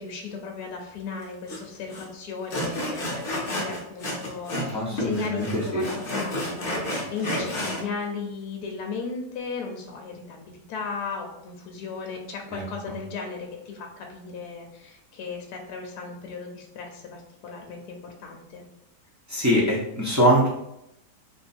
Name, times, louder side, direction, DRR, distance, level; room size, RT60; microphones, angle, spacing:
voice 1, 0.0-18.6, left 5 dB, 70° left, 2 dB, 1.1 m, -36 dB
Sawing, 1.5-1.6 1.9-2.1 2.5-4.7 5.0-7.8, left 1 dB, 45° left, 0.7 m, -31 dB
voice 2, 4.7-5.8 12.5-12.6 19.3-20.5, equal, 20° right, -7 dB, 0.4 m, -23 dB
2.9 x 2.6 x 4.2 m, 0.81 s
omnidirectional pair, 1.9 m